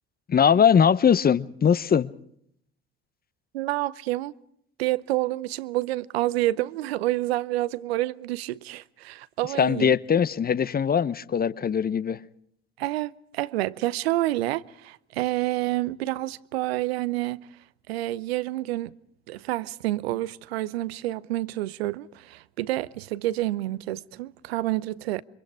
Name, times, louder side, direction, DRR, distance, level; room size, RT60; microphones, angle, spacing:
voice 1, 0.3-2.1 9.6-12.2, left 7 dB, 30° left, 0.9 m, -21 dB
voice 2, 3.5-4.3 4.8-9.9 12.8-17.5 17.9-18.9 19.3-25.2, right 16 dB, 75° right, 0.8 m, -28 dB
28.0 x 25.0 x 4.9 m
figure-of-eight pair, 55°, 32 cm